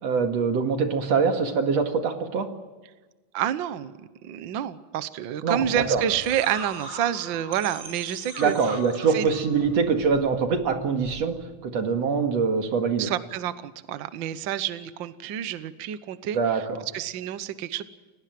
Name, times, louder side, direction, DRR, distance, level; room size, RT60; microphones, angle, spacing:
voice 1, 0.0-2.5 5.4-6.0 8.4-11.4 11.6-13.1 16.3-16.8, right 5 dB, 55° right, 5 dB, 3.0 m, -24 dB
voice 2, 3.3-4.0 4.2-8.8 9.1-9.3 13.0-16.6 16.9-17.8, right 10 dB, 75° right, 13 dB, 1.0 m, -29 dB
sound 1, 5.7-11.4, equal, 30° right, 7.3 m, -41 dB
29.5 x 17.5 x 7.6 m, 1.3 s
omnidirectional pair, 3.6 m